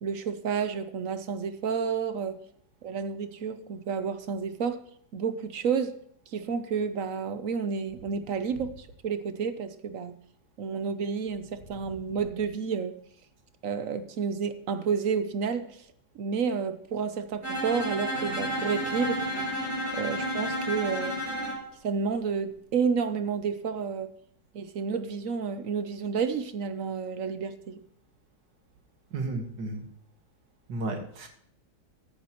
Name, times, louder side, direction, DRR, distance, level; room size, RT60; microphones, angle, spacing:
voice 1, 0.0-2.4 2.8-4.8 5.1-6.0 6.3-10.2 10.6-13.0 13.6-15.8 16.1-19.2 19.9-21.2 21.8-24.1 24.5-27.8, right 6 dB, 60° right, 11 dB, 1.0 m, -30 dB
Bowed string instrument, 17.4-21.6, equal, 35° right, 4.2 m, -31 dB
voice 2, 29.1-29.9 30.7-31.3, right 2 dB, 80° right, 4 dB, 2.2 m, -33 dB
14.0 x 9.4 x 3.0 m, 0.67 s
omnidirectional pair, 1.9 m